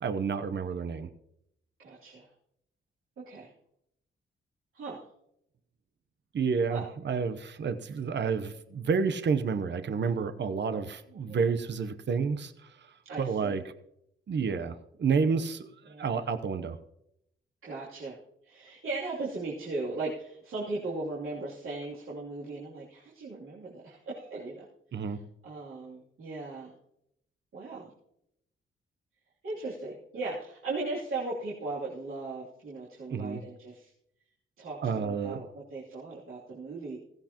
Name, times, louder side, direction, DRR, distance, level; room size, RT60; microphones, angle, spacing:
voice 1, 0.0-1.1 6.3-13.6 14.3-16.8 24.9-25.2 33.1-33.4 34.8-35.4, right 5 dB, 60° right, 10 dB, 0.9 m, -30 dB
voice 2, 1.8-2.3 3.2-3.5 4.7-5.0 6.7-6.9 11.3-11.5 13.0-13.6 15.9-16.3 17.6-18.2 18.4-24.7 24.9-25.2 25.4-26.7 27.5-27.9 29.4-33.9 34.6-35.4 35.7-37.0, right 3 dB, 80° right, -8 dB, 2.9 m, -38 dB
16.0 x 15.5 x 3.0 m, 0.78 s
cardioid pair, 70°, 21 cm